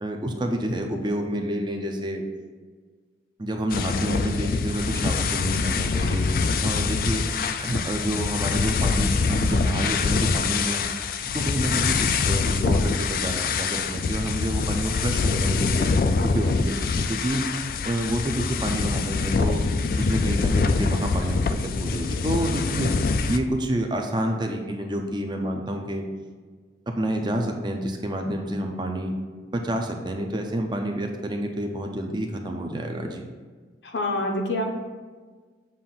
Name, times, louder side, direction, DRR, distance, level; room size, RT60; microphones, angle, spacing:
voice 1, 0.0-2.2 3.4-6.3 6.6-7.2 7.6-10.8 11.3-15.9 16.2-17.4 17.8-19.7 20.0-22.9 23.3-26.0 26.9-29.1 29.5-33.2, right 1 dB, 25° right, 3 dB, 0.5 m, -28 dB
sound 1, 3.7-23.4, left 4 dB, 50° left, 0.3 m, -24 dB
voice 2, 33.8-34.6, left 1 dB, 80° left, 2 dB, 0.9 m, -26 dB
7.3 x 2.5 x 5.7 m, 1.5 s
head